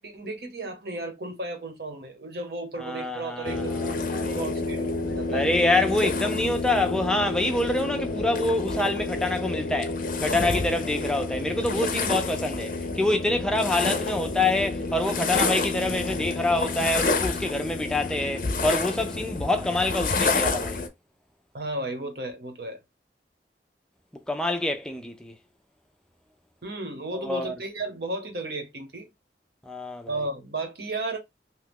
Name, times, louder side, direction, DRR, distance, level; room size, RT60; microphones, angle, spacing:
voice 1, 0.0-5.5 21.5-22.8 26.6-29.1 30.1-31.2, right 2 dB, 60° right, 1.0 m, -34 dB
voice 2, 2.8-4.5 5.3-20.8 24.3-25.3 27.1-27.5 29.6-30.1, left 2 dB, 5° left, 0.4 m, -26 dB
sound 1, 3.4-20.9, left 3 dB, 50° left, 0.6 m, -29 dB
2.9 x 2.3 x 3.5 m
head